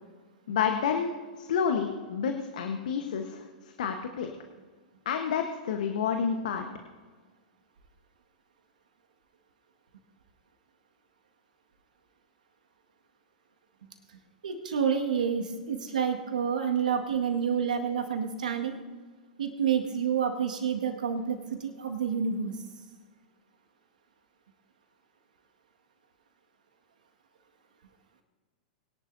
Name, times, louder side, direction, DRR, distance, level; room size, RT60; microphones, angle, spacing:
voice 1, 0.5-3.4 3.8-4.3 5.0-6.7, left 7 dB, 70° left, 5 dB, 1.1 m, -29 dB
voice 2, 14.4-18.8 19.4-22.6, right 7 dB, 75° right, 3 dB, 1.8 m, -29 dB
22.0 x 10.5 x 2.7 m, 1.4 s
hypercardioid pair, 105°, 4 cm